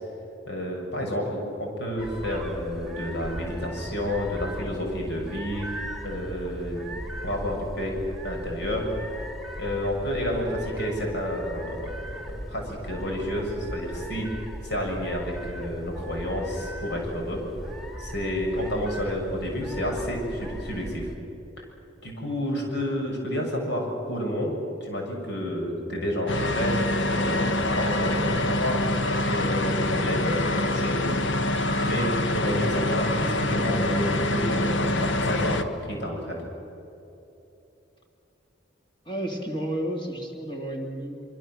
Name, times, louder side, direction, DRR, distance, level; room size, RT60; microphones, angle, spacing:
voice 1, 0.5-5.7 6.0-8.0 8.2-8.9 9.6-11.9 12.5-14.3 14.6-17.4 18.0-21.1 21.6-21.7 22.0-24.5 24.8-26.8 27.1-31.2 31.8-36.4, equal, 65° left, 0 dB, 7.2 m, -30 dB
sound 1, 2.0-21.2, equal, ahead, 2.8 m, -38 dB
sound 2, 26.3-35.6, left 1 dB, 80° left, 1.5 m, -25 dB
voice 2, 39.0-41.3, right 1 dB, 25° left, 1 dB, 2.7 m, -31 dB
25.5 x 25.0 x 7.8 m, 2.9 s
head